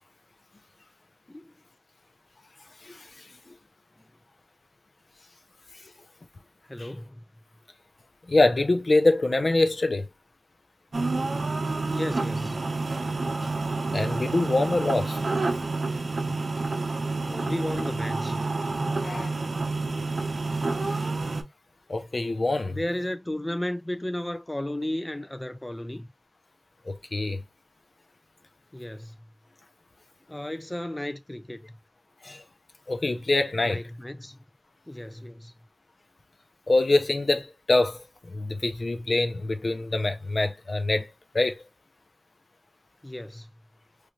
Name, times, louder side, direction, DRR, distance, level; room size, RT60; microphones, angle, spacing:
voice 1, 6.6-7.2 11.9-12.7 17.3-18.4 22.6-26.1 28.7-29.2 30.3-31.6 33.6-34.4 34.9-35.5 43.0-43.5, left 1 dB, 20° left, 0.3 m, -34 dB
voice 2, 8.3-10.0 13.9-15.2 19.0-19.4 21.9-22.8 26.9-27.4 32.2-32.4 32.9-33.8 36.7-38.0 38.3-41.6, left 2 dB, 65° left, 0.6 m, -24 dB
sound 1, 10.9-21.4, right 3 dB, 80° right, 0.6 m, -29 dB
3.1 x 2.5 x 3.1 m
wide cardioid pair, 50°, 0 cm